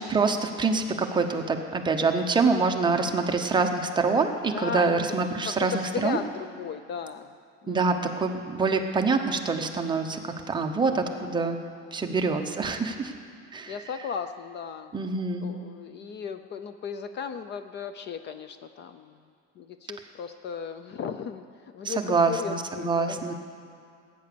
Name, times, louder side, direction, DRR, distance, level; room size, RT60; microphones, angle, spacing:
voice 1, 0.1-6.2 7.7-11.6 11.9-13.1 13.5-13.8 14.9-15.5 21.8-23.3, right 4 dB, 15° right, 4 dB, 0.8 m, -25 dB
voice 2, 4.5-5.1 5.4-7.3 7.6-8.1 10.8-11.3 13.7-14.9 15.4-19.2 19.6-23.3, left 6 dB, 35° left, 10 dB, 0.5 m, -36 dB
18.5 x 9.3 x 6.9 m, 2.4 s
cardioid pair, 170°, 29 cm